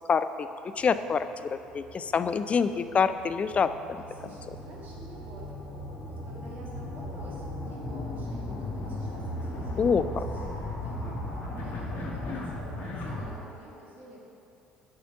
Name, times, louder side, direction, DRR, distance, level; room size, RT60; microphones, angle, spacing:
voice 1, 0.1-0.5 0.8-1.3 1.5-3.7 9.8-10.0, left 6 dB, 30° left, 11 dB, 0.4 m, -25 dB
sound 1, 0.8-13.3, left 1 dB, 45° left, 1.6 m, -37 dB
voice 2, 4.0-14.2, right 1 dB, 45° right, -4 dB, 1.7 m, -49 dB
6.8 x 5.0 x 6.9 m, 2.7 s
figure-of-eight pair, 55°, 4 cm